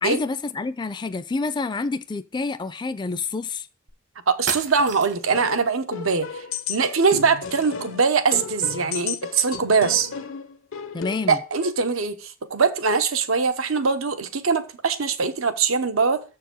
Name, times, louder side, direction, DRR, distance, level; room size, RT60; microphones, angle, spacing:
voice 1, 0.0-3.7 10.9-11.4, left 3 dB, 20° left, 0.4 m, -28 dB
sound 1, 3.9-4.0 4.5-5.4, right 6 dB, 65° right, 1.4 m, -30 dB
voice 2, 4.3-10.1 11.3-16.2, right 5 dB, 90° right, 0.9 m, -22 dB
sound 2, 5.3-11.7, left 6 dB, 80° left, 0.8 m, -34 dB
7.2 x 4.8 x 6.1 m
head